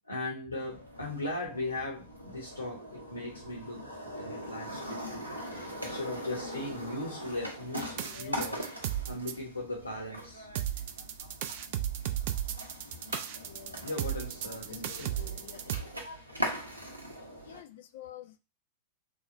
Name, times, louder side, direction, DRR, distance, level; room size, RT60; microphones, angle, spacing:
voice 1, 0.0-8.7 9.1-10.5 13.8-15.4 16.0-16.3, left 2 dB, 85° left, 0 dB, 0.8 m, -38 dB
sound 1, 0.5-17.6, equal, 85° right, 0.8 m, -41 dB
sound 2, 7.8-9.3 10.5-15.8, right 11 dB, 50° right, 0.4 m, -34 dB
voice 2, 8.0-8.4 13.4-13.8 14.4-15.7 17.4-18.4, left 11 dB, 55° left, 9 dB, 0.4 m, -49 dB
3.2 x 2.3 x 3.9 m, 0.30 s
figure-of-eight pair, 90°, 0 cm